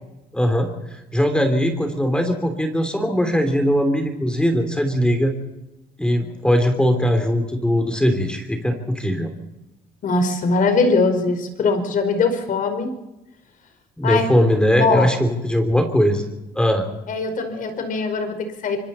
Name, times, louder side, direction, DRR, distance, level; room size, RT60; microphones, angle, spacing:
voice 1, 0.3-5.3 6.0-9.3 14.0-16.2 16.5-16.8, equal, 5° left, 6 dB, 3.2 m, -20 dB
voice 2, 10.0-12.9 14.0-14.3 14.8-15.1 17.1-18.8, left 4 dB, 55° left, 7 dB, 5.2 m, -21 dB
26.0 x 23.5 x 4.3 m, 0.98 s
cardioid pair, 110°, 17 cm